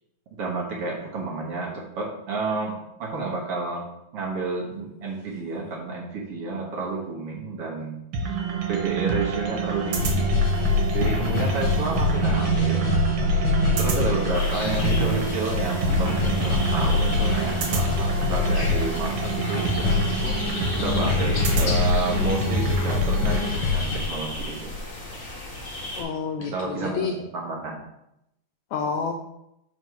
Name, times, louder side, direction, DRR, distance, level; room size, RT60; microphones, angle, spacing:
voice 1, 0.3-3.8 4.1-8.0 8.2-8.4 8.7-10.3 10.9-12.9 13.1-13.2 13.8-24.7 26.4-27.8, right 3 dB, 55° right, -3 dB, 1.9 m, -31 dB
sound 1, 8.1-23.5, right 5 dB, 80° right, 2.7 m, -28 dB
sound 2, 10.0-24.1, left 4 dB, 65° left, 2.2 m, -25 dB
sound 3, 14.3-26.0, left 1 dB, 35° left, 1.6 m, -35 dB
voice 2, 25.9-27.1 28.7-29.1, left 6 dB, 85° left, 3 dB, 1.6 m, -29 dB
6.3 x 5.4 x 4.7 m, 0.82 s
omnidirectional pair, 3.8 m